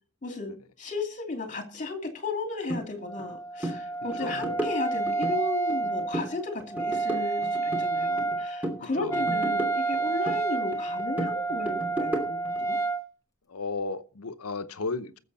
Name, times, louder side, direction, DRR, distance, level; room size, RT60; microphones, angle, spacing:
voice 1, 0.2-12.8, left 3 dB, 35° left, 2.8 m, -35 dB
sound 1, 2.7-2.8 3.2-3.3 3.6-3.8 4.1-5.4 5.7-6.3 6.6-8.4 8.6-10.4 10.7-12.6, right 1 dB, 10° right, 2.9 m, -34 dB
Wind instrument woodwind instrument, 3.0-13.0, right 3 dB, 15° left, 0.9 m, -30 dB
voice 2, 8.8-9.2 13.5-15.2, left 3 dB, 80° left, 0.9 m, -34 dB
19.0 x 7.6 x 4.2 m
head